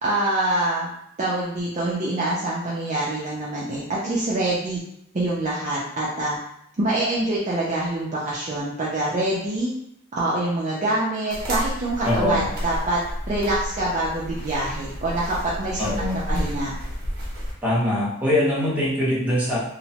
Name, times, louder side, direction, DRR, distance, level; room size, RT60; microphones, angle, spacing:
voice 1, 0.0-0.9 1.2-4.8 5.1-6.4 6.8-9.7 10.2-13.0 13.3-15.8 16.3-16.7, right 1 dB, 35° right, -6 dB, 0.5 m, -25 dB
sound 1, 11.3-17.5, equal, 50° right, 0.8 m, -31 dB
voice 2, 12.0-12.4 15.8-16.2 17.6-19.6, left 1 dB, 5° right, -8 dB, 0.9 m, -22 dB
2.9 x 2.1 x 2.8 m, 0.74 s
head